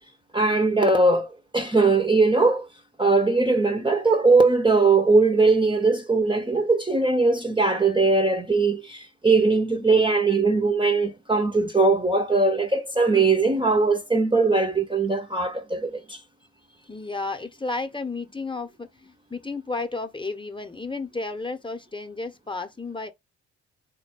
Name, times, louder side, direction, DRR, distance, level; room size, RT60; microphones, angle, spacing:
voice 1, 0.3-2.7 3.0-16.2, right 3 dB, 15° right, 0.7 m, -20 dB
voice 2, 16.8-23.1, left 3 dB, 15° left, 0.9 m, -32 dB
3.9 x 2.3 x 4.4 m
hypercardioid pair, 40°, 35 cm